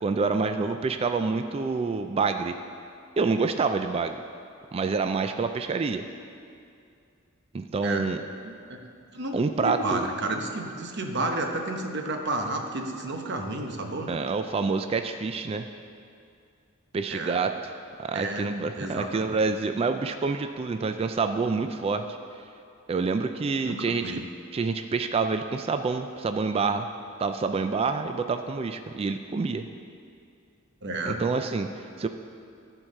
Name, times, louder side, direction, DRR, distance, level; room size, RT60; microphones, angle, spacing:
voice 1, 0.0-2.5 3.2-4.2 4.7-6.0 7.5-8.2 9.3-10.0 14.1-15.7 16.9-17.5 18.0-22.0 22.9-24.3 24.5-26.9 27.2-29.6 31.1-32.1, right 4 dB, 30° right, 7 dB, 0.3 m, -27 dB
voice 2, 8.4-8.8 9.1-14.2 17.1-17.4 18.1-18.5 18.8-19.3 23.6-24.3 30.8-31.3, right 2 dB, 55° right, 3 dB, 1.0 m, -31 dB
13.5 x 4.6 x 6.5 m, 2.4 s
head